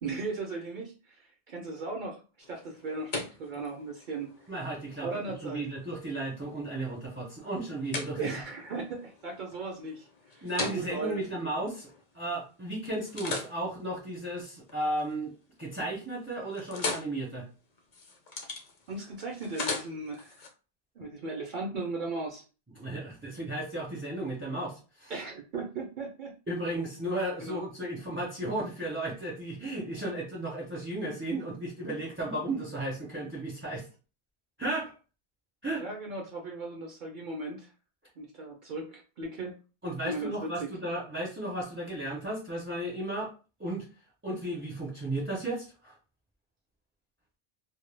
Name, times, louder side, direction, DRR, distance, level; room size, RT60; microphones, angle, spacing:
voice 1, 0.0-4.3 5.0-5.7 8.2-11.2 18.9-20.5 21.0-22.4 25.1-26.4 27.4-27.6 35.8-37.7 38.2-39.5 40.0-40.7, right 3 dB, 60° right, 0 dB, 0.6 m, -37 dB
sound 1, 2.4-12.4 12.9-15.1 15.5-15.9 16.2-20.5, left 3 dB, 50° left, 0.6 m, -40 dB
voice 2, 4.5-5.1 5.4-8.4 10.4-11.9 12.1-17.5 22.7-25.1 26.5-33.9 34.6-34.9 35.6-35.8 39.8-43.3 43.6-43.9 44.2-45.9, right 1 dB, 20° right, -3 dB, 0.3 m, -34 dB
2.1 x 2.1 x 3.1 m, 0.34 s
omnidirectional pair, 1.0 m